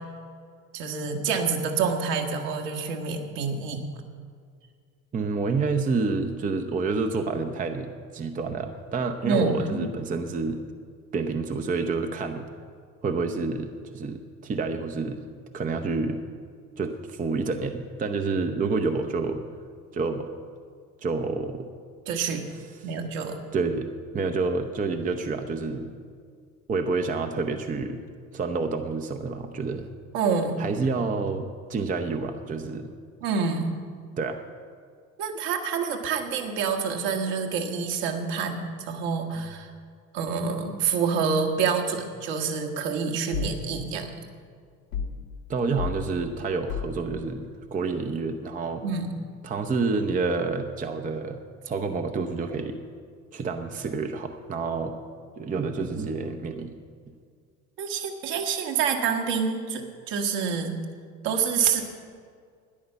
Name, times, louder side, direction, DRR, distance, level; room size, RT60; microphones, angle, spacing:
voice 1, 0.7-3.8 9.2-9.9 22.1-22.5 22.8-23.4 30.1-30.6 33.2-33.8 35.2-39.7 40.1-44.1 48.8-49.1 57.8-59.8 60.1-60.8 61.2-61.8, right 5 dB, 55° right, 3 dB, 1.7 m, -27 dB
voice 2, 5.1-10.6 11.1-12.5 13.0-15.2 15.5-16.2 16.8-19.4 19.9-20.3 21.0-21.7 23.5-23.9 24.1-25.9 26.7-28.0 28.3-29.9 30.6-32.9 34.2-34.4 39.4-39.5 45.5-48.8 49.4-51.4 51.6-52.8 53.3-54.9 55.4-56.8, right 4 dB, 15° right, 7 dB, 0.7 m, -28 dB
sound 1, 43.3-43.6 44.9-45.2 45.8-46.0 46.7-47.0, left 6 dB, 75° left, 1.5 m, -31 dB
13.0 x 10.5 x 5.7 m, 2.1 s
figure-of-eight pair, 70°, 49 cm